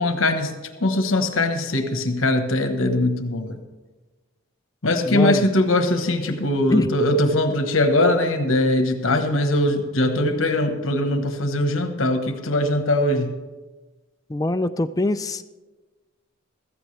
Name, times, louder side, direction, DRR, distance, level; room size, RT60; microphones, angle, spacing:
voice 1, 0.0-3.6 4.8-13.3, left 1 dB, 75° left, 7 dB, 1.2 m, -21 dB
voice 2, 5.0-5.5 6.7-6.9 14.3-15.4, left 2 dB, 15° left, 11 dB, 0.4 m, -23 dB
15.5 x 14.0 x 3.3 m, 1.2 s
head